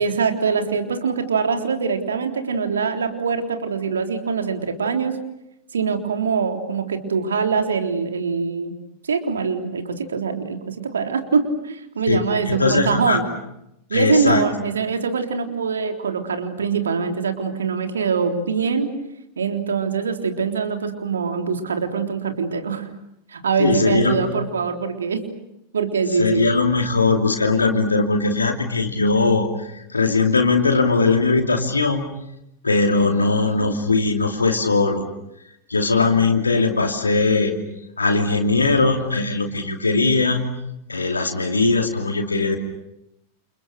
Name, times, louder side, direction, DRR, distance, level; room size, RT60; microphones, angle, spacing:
voice 1, 0.0-5.2 5.7-8.7 9.0-13.3 13.9-18.9 19.4-22.9 23.3-25.2 25.7-26.5 32.9-33.3, right 5 dB, 70° right, 6 dB, 3.7 m, -23 dB
voice 2, 12.1-13.2 13.9-14.4 23.6-24.2 26.2-32.0 32.6-35.1 35.7-37.6 38.0-40.5 40.9-42.6, left 3 dB, 80° left, 4 dB, 2.9 m, -20 dB
29.5 x 29.0 x 6.7 m, 0.82 s
figure-of-eight pair, 90°, 0 cm